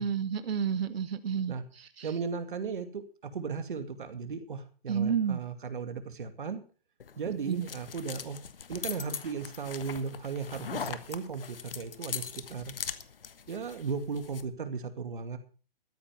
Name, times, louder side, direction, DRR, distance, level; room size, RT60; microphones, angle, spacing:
voice 1, 0.0-2.1 4.9-5.4 7.5-7.6, right 7 dB, 85° right, 12 dB, 1.1 m, -30 dB
voice 2, 2.0-3.0 3.3-6.6 7.2-8.4 8.7-12.7 13.5-15.4, right 5 dB, 55° right, 9 dB, 2.2 m, -36 dB
sound 1, 7.0-14.4, left 6 dB, 65° left, 1.4 m, -41 dB
13.5 x 9.9 x 5.7 m, 0.38 s
hypercardioid pair, 175°, 30 cm